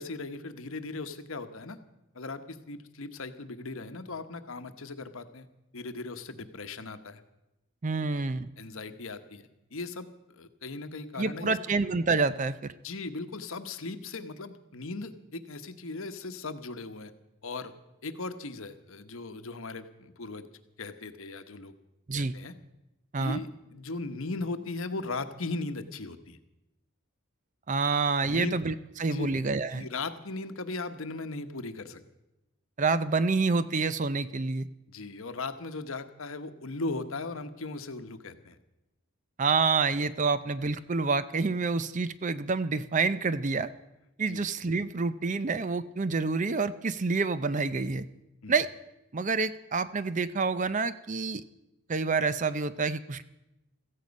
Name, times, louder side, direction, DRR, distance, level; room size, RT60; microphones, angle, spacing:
voice 1, 0.0-1.8 2.1-5.5 5.7-7.2 8.1-8.2 8.6-11.6 12.8-17.1 17.4-17.7 18.0-20.5 20.8-21.7 22.1-22.5 23.2-26.4 28.2-28.6 29.0-29.3 29.7-32.0 34.9-38.6 44.3-44.4 48.4-48.5, left 3 dB, 65° left, 9 dB, 1.1 m, -38 dB
voice 2, 7.8-8.5 11.2-12.7 22.1-22.3 23.1-23.4 27.7-29.9 32.8-34.7 39.4-43.7 44.2-48.0 48.5-48.7 49.1-51.4 51.9-53.2, right 4 dB, 35° right, 14 dB, 0.5 m, -28 dB
16.5 x 14.5 x 5.3 m, 0.95 s
head